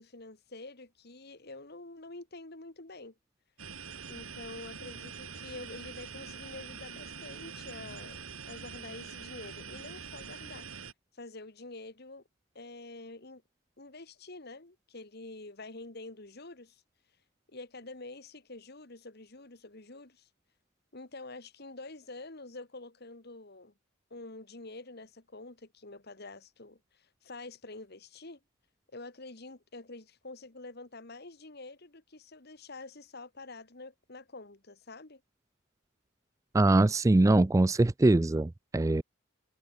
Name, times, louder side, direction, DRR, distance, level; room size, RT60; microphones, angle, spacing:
voice 1, 0.0-3.2 4.1-10.7 11.1-12.2 12.6-13.4 13.8-16.8 17.5-20.3 20.9-23.7 24.1-28.4 28.9-35.2, left 2 dB, 50° left, 1.9 m, -47 dB
sound 1, 3.6-10.9, right 6 dB, 85° right, 3.5 m, -44 dB
voice 2, 36.5-39.0, right 2 dB, 15° right, 0.3 m, -23 dB
head